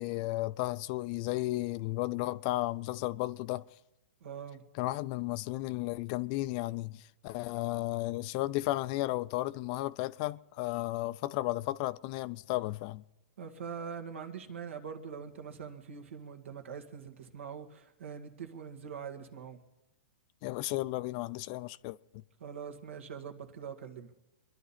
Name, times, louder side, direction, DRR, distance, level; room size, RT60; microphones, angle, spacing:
voice 1, 0.0-3.6 4.8-13.0 20.4-22.2, left 18 dB, 40° left, 0.4 m, -34 dB
voice 2, 4.2-4.6 13.4-19.6 22.4-24.1, right 7 dB, 80° right, 1.8 m, -43 dB
25.0 x 11.5 x 4.2 m
hypercardioid pair, 135°, 7 cm